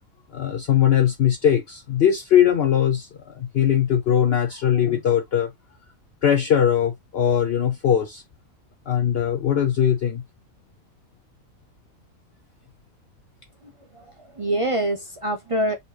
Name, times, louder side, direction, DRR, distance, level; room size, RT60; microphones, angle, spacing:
voice 1, 0.3-5.5 6.2-8.2 8.9-10.2, left 9 dB, 60° left, 0.7 m, -20 dB
voice 2, 13.6-15.8, right 1 dB, 40° right, 0.4 m, -26 dB
4.1 x 2.9 x 3.2 m
omnidirectional pair, 1.4 m